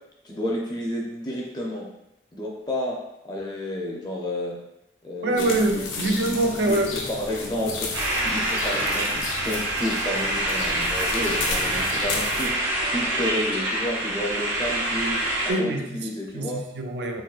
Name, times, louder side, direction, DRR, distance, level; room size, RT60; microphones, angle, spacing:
voice 1, 0.2-1.9 2.3-3.0 3.2-4.6 5.0-6.3 6.7-6.8 7.1-7.9 8.2-12.5 12.9-16.6, left 1 dB, 20° left, -2 dB, 0.5 m, -31 dB
voice 2, 5.2-6.9 15.5-17.2, right 2 dB, 60° right, 4 dB, 0.3 m, -25 dB
sound 1, 5.4-12.5, left 3 dB, 85° left, 0.6 m, -33 dB
sound 2, 7.9-15.5, right 1 dB, 80° right, 0.7 m, -26 dB
3.7 x 2.6 x 2.4 m, 0.85 s
head